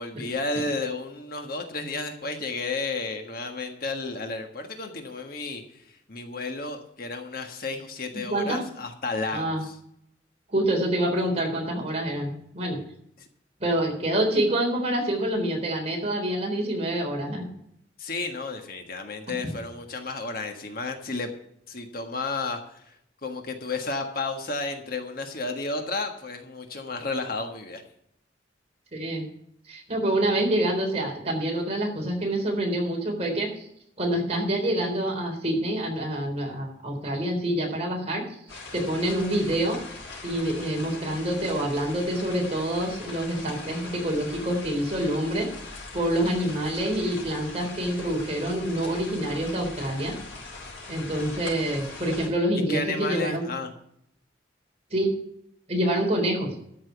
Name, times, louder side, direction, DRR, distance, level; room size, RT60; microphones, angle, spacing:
voice 1, 0.0-9.7 13.2-13.3 18.0-21.3 21.7-22.9 23.2-27.8 52.7-53.7, left 3 dB, 50° left, 4 dB, 1.5 m, -32 dB
voice 2, 8.3-8.6 9.3-9.6 10.5-12.8 13.6-17.4 28.9-29.3 29.7-33.7 34.0-38.2 38.5-39.8 40.2-45.5 45.9-50.1 50.9-53.4 54.9-55.1 55.7-56.5, right 1 dB, 35° right, 0 dB, 3.8 m, -26 dB
sound 1, 38.5-52.3, left 3 dB, 85° left, 5.2 m, -41 dB
13.0 x 6.1 x 8.2 m, 0.72 s
head